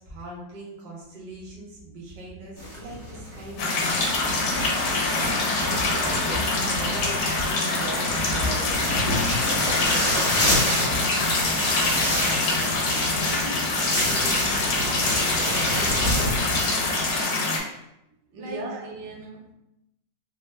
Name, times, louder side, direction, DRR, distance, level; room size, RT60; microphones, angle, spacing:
voice 1, 0.0-4.6 11.7-17.1 18.4-18.8, right 1 dB, 45° right, 0.6 m, -41 dB
sound 1, 2.6-17.2, left 1 dB, 25° left, 0.7 m, -28 dB
sound 2, 3.6-17.6, left 2 dB, 75° left, 1.2 m, -25 dB
voice 2, 5.3-11.2 11.6-11.7 18.3-19.5, right 2 dB, 80° right, 1.3 m, -39 dB
3.2 x 2.1 x 3.2 m
omnidirectional pair, 2.0 m